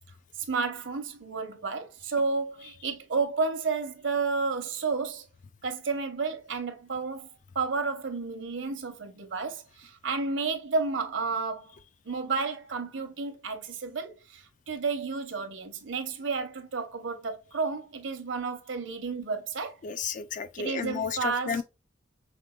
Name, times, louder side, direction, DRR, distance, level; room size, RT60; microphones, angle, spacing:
voice 1, 0.4-5.2 5.6-7.3 7.5-11.7 12.0-19.8 20.6-21.6, right 4 dB, 75° right, 0.9 m, -31 dB
voice 2, 19.8-21.6, left 6 dB, 40° left, 0.4 m, -32 dB
5.2 x 3.4 x 2.2 m
head